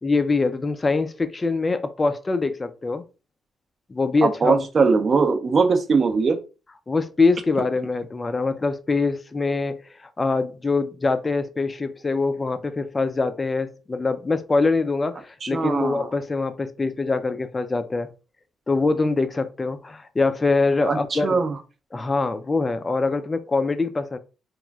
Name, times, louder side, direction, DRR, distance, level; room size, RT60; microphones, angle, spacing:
voice 1, 0.0-3.0 3.9-4.6 6.9-18.1 18.7-21.4 21.9-24.2, left 3 dB, 25° left, 0.3 m, -24 dB
voice 2, 4.2-6.4 15.4-16.1 20.8-21.5, right 4 dB, 40° right, 0.5 m, -21 dB
3.0 x 2.4 x 2.3 m
cardioid pair, 90°, 0 cm